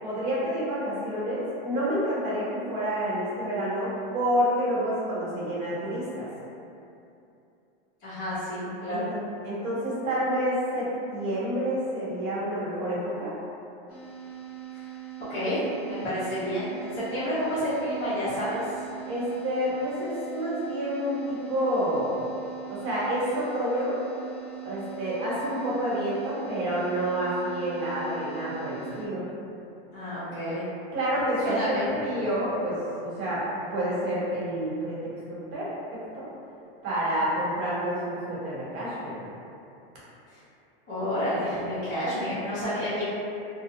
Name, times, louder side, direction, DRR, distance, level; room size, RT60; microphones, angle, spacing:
voice 1, 0.0-6.3 8.9-9.2 9.4-13.3 19.0-22.1 22.7-24.0 24.6-29.2 30.9-33.4 33.7-36.3 36.8-39.2, equal, 40° right, -8 dB, 0.9 m, -29 dB
voice 2, 8.0-9.1 14.8-14.9 15.3-18.7 29.9-30.6 31.5-31.9 40.9-43.0, equal, 35° left, -14 dB, 0.9 m, -30 dB
sound 1, 13.9-29.1, right 13 dB, 90° left, 0.7 m, -41 dB
2.6 x 2.1 x 2.6 m, 2.7 s
supercardioid pair, 155°, 30 cm